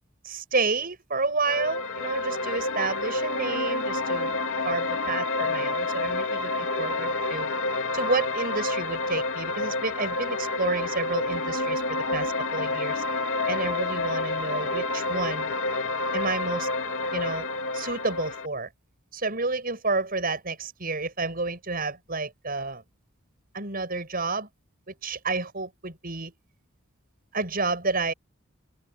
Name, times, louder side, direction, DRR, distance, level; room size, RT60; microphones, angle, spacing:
voice 1, 0.2-4.4 4.6-6.5 6.8-7.5 7.9-13.0 13.5-15.6 16.1-16.7 17.1-17.5 17.7-18.7 19.1-22.8 23.5-24.5 24.9-26.3 27.3-28.1, right 3 dB, 45° right, 7.6 m, -30 dB
sound 1, 1.5-18.5, left 2 dB, 65° left, 2.9 m, -29 dB
head